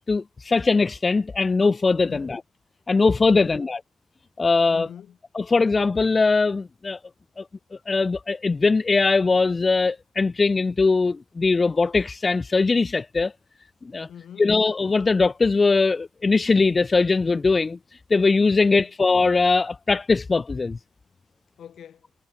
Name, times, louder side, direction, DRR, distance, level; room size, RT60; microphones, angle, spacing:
voice 1, 0.1-2.4 2.9-3.8 4.4-4.9 5.3-7.0 7.4-7.5 7.9-13.3 13.9-14.1 14.4-17.8 18.1-20.8, left 4 dB, 30° left, 1.0 m, -21 dB
voice 2, 2.1-2.4 3.3-3.7 4.7-5.2 14.1-14.5 18.7-18.9 21.6-22.1, left 9 dB, 60° left, 4.9 m, -43 dB
cardioid pair, 90°, 0 cm